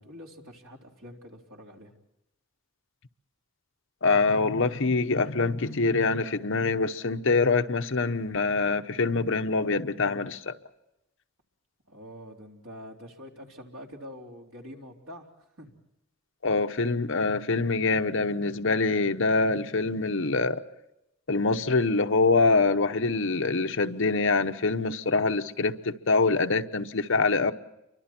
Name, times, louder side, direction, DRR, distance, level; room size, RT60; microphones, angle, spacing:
voice 1, 0.0-1.9 11.9-15.3 15.6-15.8, equal, 80° right, 3.9 m, -45 dB
voice 2, 4.0-10.5 16.4-20.6 21.3-27.5, left 3 dB, 65° left, 1.0 m, -25 dB
30.0 x 24.5 x 4.5 m
head